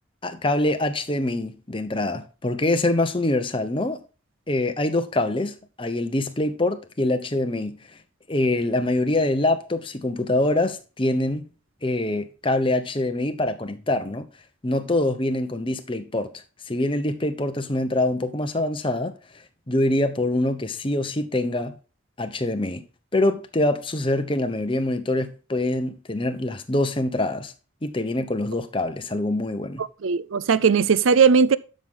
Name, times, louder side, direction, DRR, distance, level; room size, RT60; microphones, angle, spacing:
voice 1, 0.2-4.0 4.5-7.8 8.3-11.4 11.8-14.3 14.6-16.3 16.7-19.1 19.7-21.8 22.2-22.8 23.1-27.5 27.8-29.8, left 2 dB, 25° left, 0.9 m, -24 dB
voice 2, 29.8-31.6, right 6 dB, 80° right, 0.5 m, -18 dB
11.5 x 6.4 x 3.7 m
head